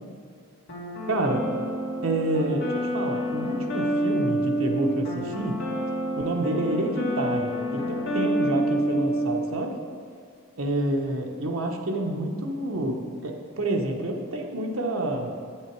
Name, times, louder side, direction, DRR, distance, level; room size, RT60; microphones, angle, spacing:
sound 1, 0.7-9.4, right 1 dB, 55° left, 2.1 m, -28 dB
voice 1, 1.1-1.4 2.0-5.6 6.2-9.7 10.6-15.3, right 1 dB, 75° right, 2 dB, 1.1 m, -28 dB
8.7 x 7.9 x 4.6 m, 2.3 s
head